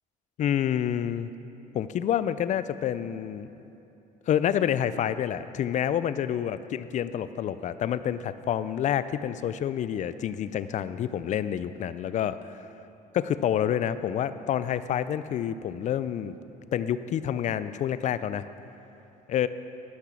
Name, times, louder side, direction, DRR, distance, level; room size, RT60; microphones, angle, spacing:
voice 1, 0.4-1.3 1.7-3.5 4.3-12.4 13.1-16.3 16.7-18.4 19.3-19.5, left 10 dB, 45° left, 14 dB, 0.4 m, -28 dB
12.0 x 6.1 x 5.8 m, 3.0 s
cardioid pair, 110°, 17 cm